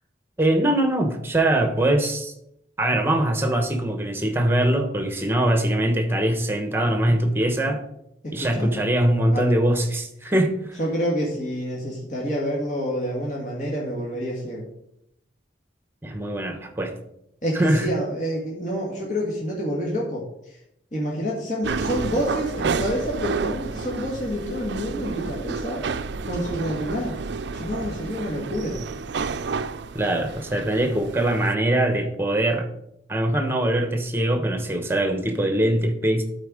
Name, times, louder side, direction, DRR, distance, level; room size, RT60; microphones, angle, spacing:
voice 1, 0.4-2.3 2.8-7.8 8.3-10.8 16.0-16.9 17.5-17.9 29.9-32.7 33.1-36.2, right 1 dB, 15° right, 5 dB, 1.1 m, -22 dB
voice 2, 8.2-8.8 9.3-9.5 10.8-14.7 17.4-20.2 20.9-25.8 26.3-27.1 27.5-28.8, equal, 40° left, -4 dB, 1.9 m, -28 dB
sound 1, 21.6-31.5, right 4 dB, 70° right, 0.4 m, -30 dB
12.0 x 4.4 x 5.0 m, 0.77 s
head